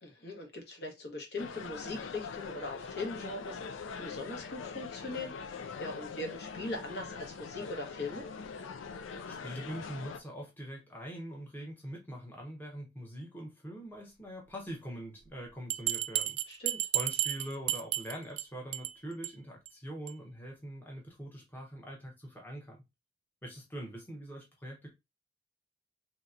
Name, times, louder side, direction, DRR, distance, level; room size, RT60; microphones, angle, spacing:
voice 1, 0.0-8.3 16.5-16.8, left 2 dB, 60° left, 0.9 m, -41 dB
sound 1, 1.4-10.2, left 5 dB, 90° left, 0.4 m, -43 dB
voice 2, 9.3-16.4 16.9-22.8 23.4-24.9, equal, 10° left, 0.7 m, -43 dB
Bell, 15.7-18.4 18.7-18.9 19.2-19.3 19.7-19.8 20.1-20.2, right 13 dB, 85° right, 0.3 m, -32 dB
3.2 x 2.8 x 2.4 m
head